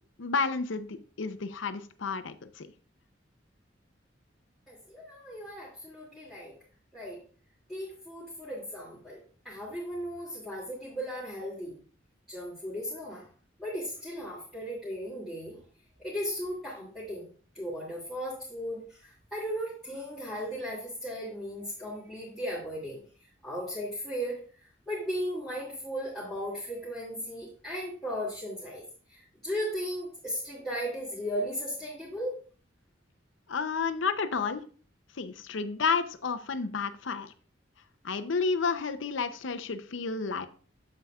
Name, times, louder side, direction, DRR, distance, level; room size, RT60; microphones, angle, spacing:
voice 1, 0.2-2.7 33.5-34.6 35.2-37.3 38.0-40.5, left 5 dB, 80° left, 10 dB, 0.7 m, -31 dB
voice 2, 4.7-6.5 6.9-7.2 7.7-9.2 9.4-11.7 12.3-13.3 13.6-15.6 16.0-17.2 17.5-23.0 23.4-24.4 24.9-28.8 29.1-32.4, equal, ahead, -10 dB, 2.4 m, -36 dB
7.8 x 7.7 x 2.4 m, 0.41 s
head